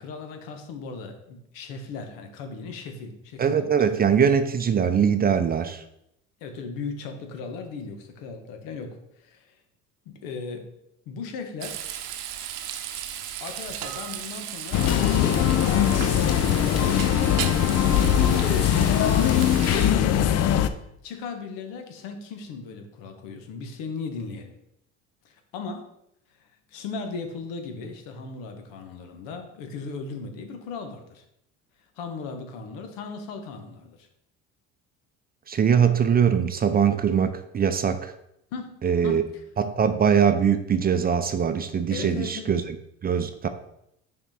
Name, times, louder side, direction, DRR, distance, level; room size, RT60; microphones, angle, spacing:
voice 1, 0.0-4.4 6.4-9.6 10.0-10.7 11.1-11.8 13.4-17.5 17.9-19.1 19.7-20.8 21.0-24.5 25.2-25.9 26.3-31.2 31.8-34.1 38.5-39.4 41.9-42.6, left 4 dB, 75° left, 5 dB, 1.3 m, -37 dB
voice 2, 3.4-5.8 35.5-38.1 38.8-39.2 39.6-42.6 43.0-43.5, right 7 dB, 25° right, 10 dB, 0.6 m, -22 dB
Frying (food), 11.6-19.9, right 10 dB, 70° right, 0.8 m, -35 dB
sound 1, 14.7-20.7, left 10 dB, 45° left, 0.6 m, -21 dB
5.8 x 4.3 x 4.2 m, 0.78 s
supercardioid pair, 85°, 34 cm